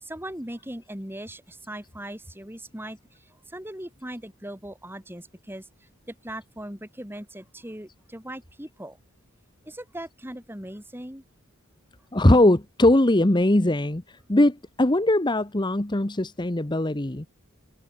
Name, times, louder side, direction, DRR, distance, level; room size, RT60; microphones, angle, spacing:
voice 1, 0.0-5.7 6.1-9.0 9.6-11.2, right 1 dB, 10° right, 5.0 m, -39 dB
voice 2, 12.1-14.0 14.3-17.3, left 1 dB, 20° left, 1.0 m, -20 dB
head